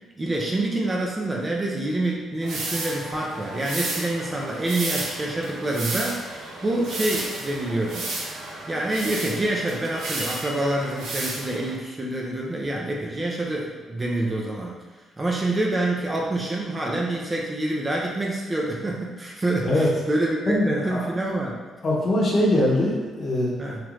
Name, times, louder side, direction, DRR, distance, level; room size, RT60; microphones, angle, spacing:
voice 1, 0.2-6.3 6.6-8.1 8.7-14.8 15.2-21.6 23.6-23.8, right 1 dB, 20° right, -2 dB, 0.4 m, -27 dB
sound 1, 2.4-11.8, right 2 dB, 85° right, 0.6 m, -33 dB
voice 2, 20.5-21.1 21.8-23.5, left 1 dB, 40° left, -5 dB, 0.8 m, -22 dB
3.0 x 2.4 x 3.2 m, 1.3 s
cardioid pair, 135°, 0 cm